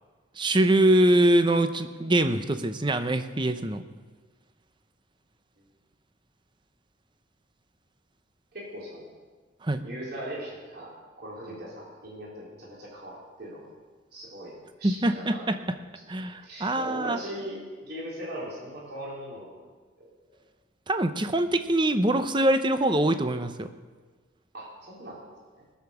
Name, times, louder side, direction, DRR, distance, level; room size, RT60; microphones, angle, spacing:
voice 1, 0.4-3.8 9.6-9.8 14.8-15.6 16.1-17.2 20.9-23.7, right 1 dB, 25° right, 9 dB, 0.7 m, -23 dB
voice 2, 8.5-9.1 9.8-10.9 11.2-13.7 14.1-15.6 16.4-19.7 20.0-20.1 24.5-25.2 25.6-25.7, equal, 50° right, -5 dB, 3.8 m, -39 dB
20.0 x 6.8 x 7.1 m, 1.4 s
head